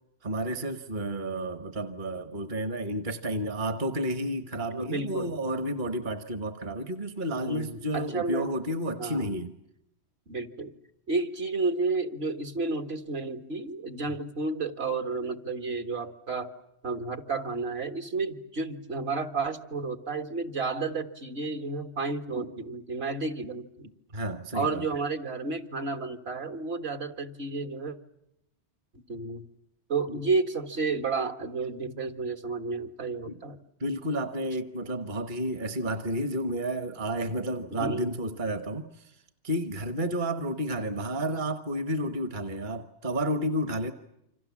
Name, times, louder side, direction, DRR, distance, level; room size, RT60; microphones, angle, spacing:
voice 1, 0.2-9.5 24.1-24.8 30.1-30.2 33.3-33.4 33.8-43.9, right 1 dB, 45° right, 9 dB, 1.4 m, -31 dB
voice 2, 4.7-5.3 7.4-8.5 9.0-9.4 10.3-10.7 11.1-16.5 16.8-23.9 24.5-28.0 29.1-29.4 29.9-33.6 37.7-38.1, right 3 dB, 65° right, 6 dB, 1.9 m, -31 dB
28.5 x 26.0 x 7.3 m, 0.82 s
omnidirectional pair, 1.2 m